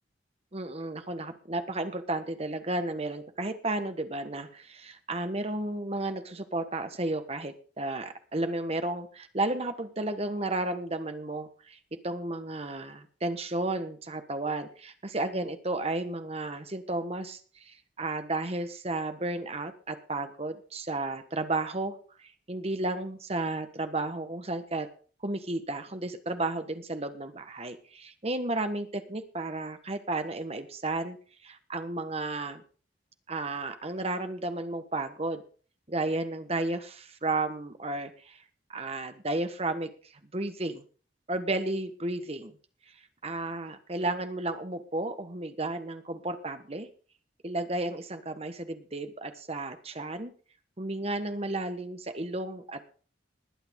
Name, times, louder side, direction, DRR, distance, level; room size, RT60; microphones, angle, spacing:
voice 1, 0.5-11.8 12.0-24.9 25.2-31.2 31.4-32.6 33.3-35.4 35.9-38.4 38.7-39.9 40.3-40.8 41.3-42.5 43.2-46.9 47.4-50.3 50.8-52.8, right 2 dB, 35° right, 8 dB, 1.4 m, -33 dB
21.0 x 8.8 x 3.7 m, 0.39 s
head